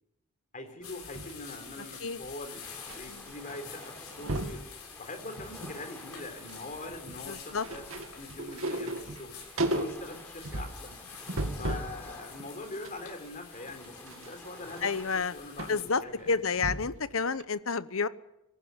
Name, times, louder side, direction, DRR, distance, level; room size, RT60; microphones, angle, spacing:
voice 1, 0.5-2.6 3.0-4.6 5.0-7.8 8.1-9.4 9.7-11.0 11.6-16.4, left 2 dB, 35° left, 6 dB, 3.9 m, -43 dB
sound 1, 0.8-15.9, left 7 dB, 90° left, 7.4 m, -48 dB
sound 2, 0.8-3.0 3.3-3.5 3.8-4.6 5.2-5.8 6.1-12.0 12.4-17.1 17.4-17.5, right 1 dB, 65° right, 2.4 m, -36 dB
sound 3, 2.6-16.0, left 1 dB, 10° left, 3.7 m, -51 dB
voice 2, 7.3-7.7 11.5-11.7 14.8-15.3 15.7-18.1, left 4 dB, 65° left, 15 dB, 1.0 m, -30 dB
25.0 x 15.5 x 9.5 m, 0.92 s
head